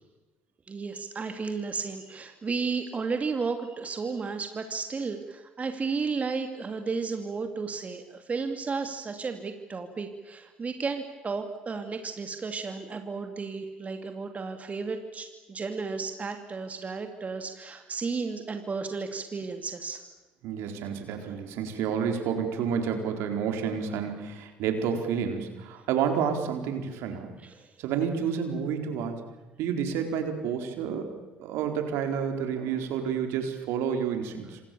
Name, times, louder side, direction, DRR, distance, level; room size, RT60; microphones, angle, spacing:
voice 1, 0.7-20.0 27.4-27.7, right 4 dB, 30° right, 6 dB, 2.7 m, -33 dB
voice 2, 20.4-27.3 27.8-29.2 29.6-31.1 31.4-34.6, right 7 dB, 65° right, 5 dB, 4.4 m, -30 dB
27.0 x 27.0 x 7.1 m, 1.2 s
hypercardioid pair, 55°, 5 cm